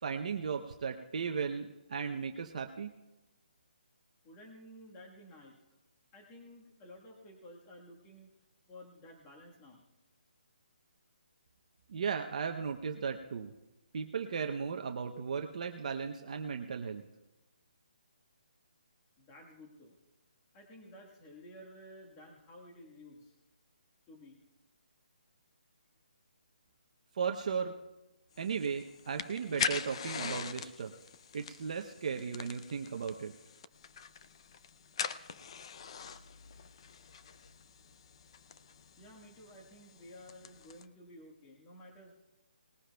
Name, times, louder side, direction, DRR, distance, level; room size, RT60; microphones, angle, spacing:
voice 1, 0.0-2.9 11.9-13.5 13.9-17.0 27.1-27.7 28.4-30.9 31.3-33.3, right 6 dB, 45° right, 4 dB, 0.7 m, -36 dB
voice 2, 4.2-5.6 6.1-8.3 8.7-9.8 19.2-20.0 20.5-23.3 24.1-24.4 39.0-42.1, left 1 dB, 15° left, 0 dB, 1.4 m, -53 dB
sound 1, 28.3-40.8, left 7 dB, 35° left, 0.5 m, -43 dB
20.0 x 15.0 x 2.3 m, 1.0 s
hypercardioid pair, 165°, 5 cm